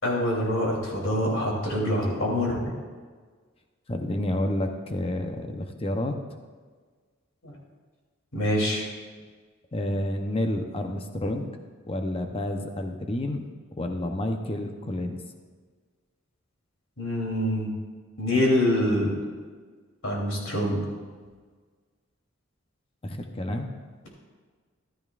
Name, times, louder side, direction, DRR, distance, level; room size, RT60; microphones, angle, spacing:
voice 1, 0.0-2.7 7.4-7.5 8.3-8.8 17.0-17.7 18.2-19.2 20.0-20.8, left 1 dB, 70° left, -2 dB, 3.2 m, -25 dB
voice 2, 3.9-6.2 9.7-11.5 11.9-13.4 13.7-15.2 23.0-23.7, left 1 dB, 25° left, 5 dB, 0.8 m, -29 dB
14.5 x 12.5 x 2.5 m, 1.5 s
head